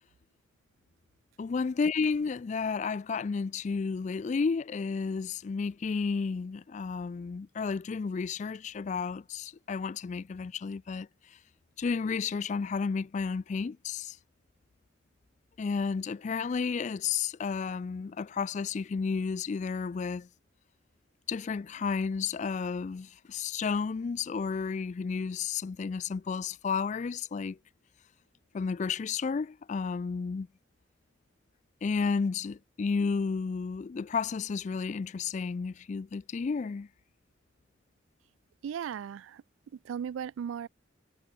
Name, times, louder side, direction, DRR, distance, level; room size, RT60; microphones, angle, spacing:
voice 1, 1.4-11.1 11.8-14.2 15.6-20.3 21.3-27.6 28.5-30.5 31.8-36.9, left 5 dB, 35° left, 0.3 m, -32 dB
voice 2, 38.6-39.4 39.7-40.7, right 8 dB, 90° right, 0.3 m, -36 dB
head